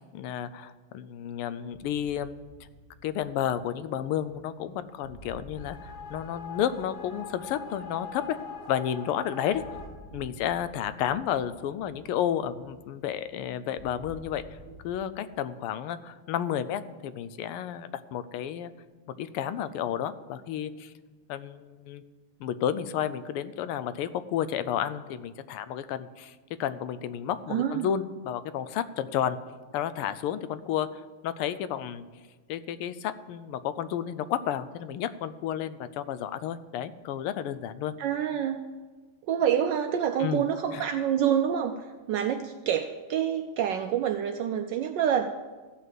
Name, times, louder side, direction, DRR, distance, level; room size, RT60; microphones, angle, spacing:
voice 1, 0.0-2.3 3.0-8.4 8.7-9.6 10.1-14.4 14.8-18.7 19.1-20.9 21.3-22.0 22.4-26.3 26.6-29.4 29.7-32.0 32.5-37.9 40.2-40.4 40.7-40.8, left 10 dB, 85° left, 14 dB, 1.5 m, -31 dB
sound 1, 1.7-14.9, equal, 40° left, 1.3 m, -51 dB
sound 2, 5.5-9.9, left 5 dB, 60° left, 2.1 m, -42 dB
voice 2, 27.5-27.9 38.0-38.7 39.3-45.3, right 9 dB, 75° right, 7 dB, 1.0 m, -27 dB
14.5 x 5.8 x 7.6 m, 1.4 s
omnidirectional pair, 2.4 m